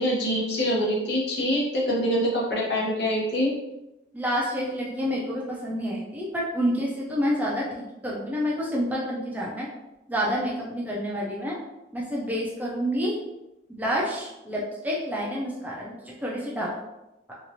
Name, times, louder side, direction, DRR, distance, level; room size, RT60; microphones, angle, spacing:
voice 1, 0.0-3.5, equal, 65° left, -4 dB, 0.9 m, -25 dB
voice 2, 4.1-9.7 10.1-11.6 11.9-13.2 13.7-16.7, equal, 10° right, -4 dB, 0.4 m, -28 dB
2.9 x 2.4 x 2.7 m, 0.94 s
head